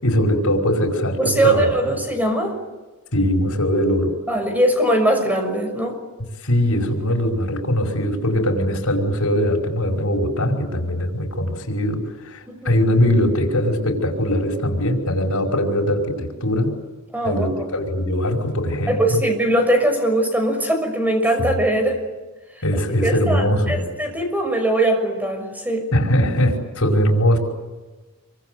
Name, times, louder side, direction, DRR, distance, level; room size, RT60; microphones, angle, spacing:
voice 1, 0.0-1.6 3.1-4.1 6.4-16.7 17.2-19.2 22.6-23.8 25.9-27.4, equal, 90° left, 1 dB, 5.4 m, -21 dB
voice 2, 1.2-2.6 4.3-6.0 12.5-12.8 17.1-17.7 18.9-22.0 23.0-25.9, right 1 dB, 10° right, 5 dB, 6.3 m, -21 dB
27.5 x 25.0 x 8.0 m, 1.2 s
head